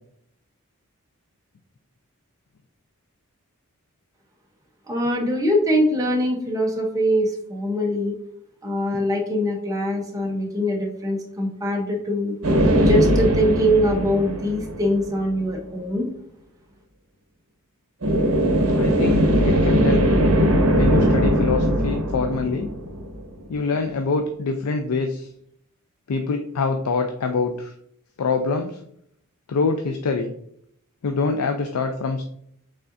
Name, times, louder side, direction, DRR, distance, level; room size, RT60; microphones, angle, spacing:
voice 1, 4.9-8.1 8.6-12.4 12.8-16.1, equal, 15° right, 0 dB, 0.8 m, -23 dB
sound 1, 12.4-15.2 18.0-23.4, equal, 70° right, 0.9 m, -20 dB
voice 2, 18.7-20.1 20.8-22.7 23.5-25.3 26.1-27.7 28.2-28.8 29.5-30.3 31.0-32.2, left 4 dB, 80° left, 5 dB, 0.4 m, -24 dB
5.5 x 3.7 x 2.5 m, 0.69 s
head